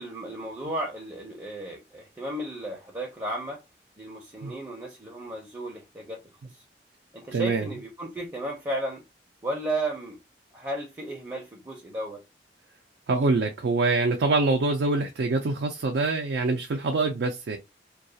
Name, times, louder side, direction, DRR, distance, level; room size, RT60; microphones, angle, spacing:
voice 1, 0.0-3.6 4.0-6.2 6.5-6.6 7.1-9.0 9.4-10.2 10.5-12.2, right 1 dB, 20° right, 0.5 m, -34 dB
voice 2, 7.3-7.7 13.1-17.6, right 3 dB, 80° right, 0.4 m, -25 dB
2.3 x 2.3 x 2.7 m
head